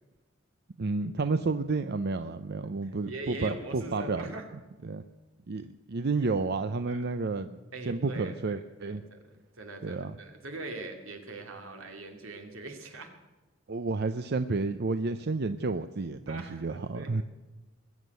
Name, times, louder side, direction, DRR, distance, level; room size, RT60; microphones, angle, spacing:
voice 1, 0.8-4.3 4.8-5.0 5.5-7.6 7.9-9.0 9.8-10.2 13.7-17.2, right 3 dB, 55° right, 10 dB, 0.6 m, -31 dB
voice 2, 2.8-4.5 6.9-7.0 7.7-9.3 9.6-13.1 16.3-17.2, right 2 dB, 85° right, 4 dB, 2.5 m, -42 dB
21.0 x 7.4 x 9.3 m, 1.1 s
head